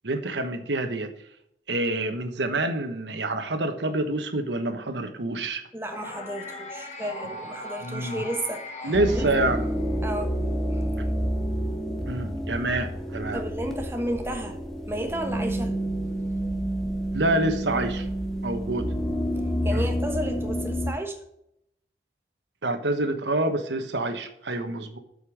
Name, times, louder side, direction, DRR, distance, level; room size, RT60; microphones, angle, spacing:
voice 1, 0.0-1.1 1.7-5.6 7.8-8.2 8.8-9.7 12.1-13.4 17.1-18.1 18.4-18.9 19.7-19.9 22.6-25.0, right 2 dB, 90° right, 8 dB, 1.2 m, -27 dB
voice 2, 5.7-9.3 10.0-10.4 10.7-10.8 13.3-14.6 14.9-15.7 19.6-21.2, right 1 dB, 15° right, 4 dB, 1.2 m, -32 dB
sound 1, 5.9-10.1, left 2 dB, 40° left, 1.6 m, -39 dB
sound 2, 8.9-20.9, equal, 5° left, 1.1 m, -29 dB
8.3 x 5.3 x 6.3 m, 0.76 s
head